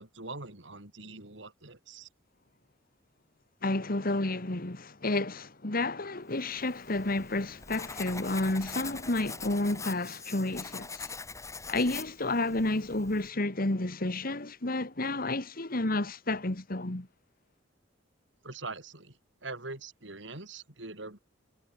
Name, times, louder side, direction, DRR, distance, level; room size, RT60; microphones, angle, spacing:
voice 1, 0.0-2.1 18.4-19.2 19.4-21.2, right 3 dB, 70° right, 4.2 m, -43 dB
voice 2, 3.6-11.1 11.7-17.1, left 2 dB, 50° left, 1.9 m, -31 dB
Writing, 6.6-13.3, left 4 dB, 15° left, 1.5 m, -43 dB
head